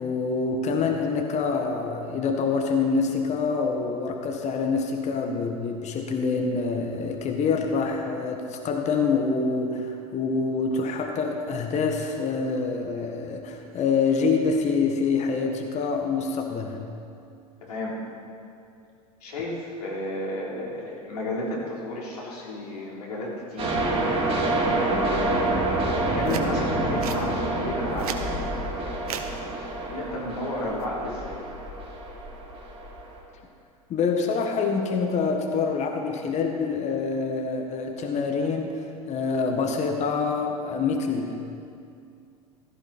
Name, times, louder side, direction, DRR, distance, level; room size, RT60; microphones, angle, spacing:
voice 1, 0.0-16.8 33.9-41.4, left 4 dB, 35° left, 3 dB, 1.6 m, -26 dB
voice 2, 17.6-17.9 19.2-23.9 24.6-29.5 29.9-31.4, left 1 dB, 75° left, -4 dB, 3.7 m, -33 dB
sound 1, 23.6-33.2, right 2 dB, 30° right, 4.2 m, -27 dB
sound 2, 26.2-26.5 27.0-27.2 27.8-28.3 29.0-29.3 30.6-30.9, right 8 dB, 70° right, 1.1 m, -33 dB
16.0 x 13.5 x 4.4 m, 2.5 s
hypercardioid pair, 85°, 20 cm